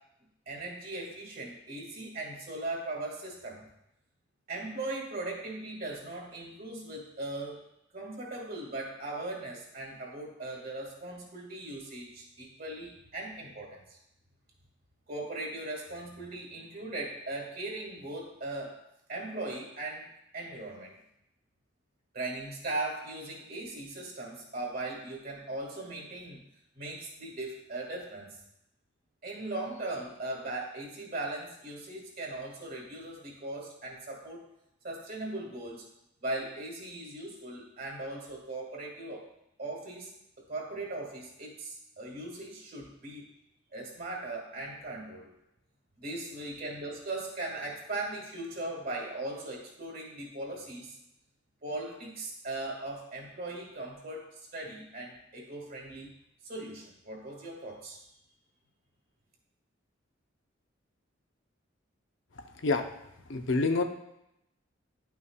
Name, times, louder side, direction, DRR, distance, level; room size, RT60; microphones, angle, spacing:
voice 1, 0.5-3.7 4.5-7.7 7.9-14.0 15.1-18.8 19.1-20.1 20.3-21.0 22.1-26.4 26.8-28.4 29.2-34.4 34.8-35.9 36.2-39.3 39.6-40.1 40.5-43.3 43.7-45.3 46.0-51.0 51.6-56.1 56.4-58.0, right 2 dB, 50° right, -1 dB, 2.0 m, -39 dB
voice 2, 62.4-62.9 63.3-63.8, left 3 dB, 70° left, 5 dB, 0.7 m, -28 dB
11.0 x 5.7 x 2.4 m, 0.81 s
head